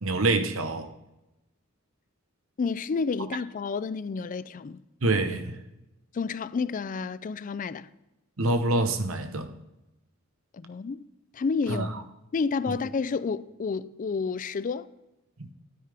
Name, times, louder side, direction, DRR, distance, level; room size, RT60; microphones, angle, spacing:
voice 1, 0.0-0.9 5.0-5.6 8.4-9.5 11.7-12.0 12.7-12.8, right 2 dB, 80° right, 1.0 m, -26 dB
voice 2, 2.6-4.8 6.1-7.9 10.5-11.1 11.3-11.9 12.3-14.9, left 5 dB, 40° left, 0.4 m, -30 dB
12.5 x 9.6 x 3.5 m
head